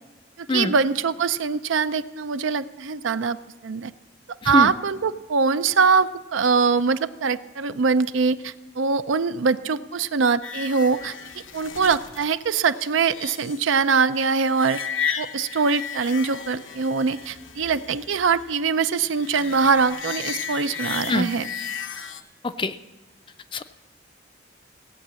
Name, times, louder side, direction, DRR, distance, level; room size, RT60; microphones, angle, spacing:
voice 1, 0.4-3.4 3.6-3.9 4.3-11.1 11.5-14.8 15.2-21.5, right 5 dB, 80° right, 13 dB, 0.5 m, -23 dB
voice 2, 4.4-4.7 21.1-21.3 22.4-22.8 23.5-23.6, left 3 dB, 25° left, 11 dB, 0.4 m, -23 dB
sound 1, 10.4-22.2, left 7 dB, 85° left, 1.0 m, -34 dB
16.5 x 8.3 x 7.6 m, 1.2 s
head